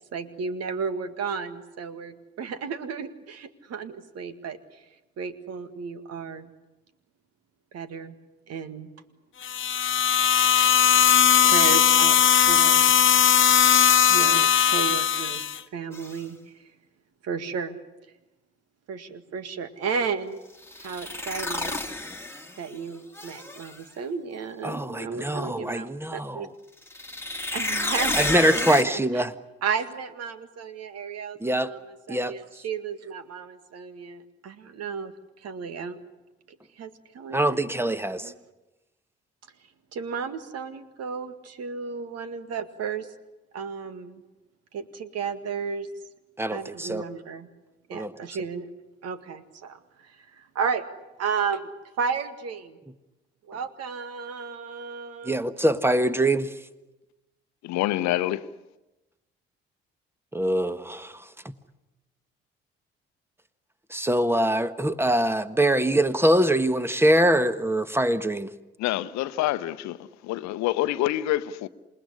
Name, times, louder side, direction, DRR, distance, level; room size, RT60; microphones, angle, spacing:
voice 1, 0.1-4.8 5.2-6.5 7.7-8.2 8.5-8.9 10.4-10.5 11.4-12.2 12.5-12.9 14.1-15.4 15.7-16.7 17.2-17.8 18.9-20.4 20.8-21.9 22.6-26.5 27.5-29.2 29.6-36.0 36.7-37.9 38.2-38.3 39.9-43.1 43.5-44.2 44.7-45.9 46.5-47.5 47.9-48.7 49.0-50.9 51.2-51.7 52.0-52.8 53.5-55.4, right 6 dB, 55° right, 2.0 m, -33 dB
sound 1, 9.4-15.6, left 9 dB, 40° left, 1.1 m, -19 dB
sound 2, 15.9-16.2 20.6-22.7 23.1-23.8 26.8-28.8, left 2 dB, 10° left, 2.1 m, -30 dB
voice 2, 24.6-26.5 28.1-29.3 31.4-31.7 32.1-32.3 37.3-38.3 46.4-47.0 47.9-48.1 55.2-56.5 60.3-61.0 63.9-68.5, right 1 dB, 5° right, 1.5 m, -23 dB
voice 3, 57.6-58.5 68.8-71.7, left 15 dB, 60° left, 1.0 m, -27 dB
28.0 x 19.5 x 9.9 m
figure-of-eight pair, 45°, 31 cm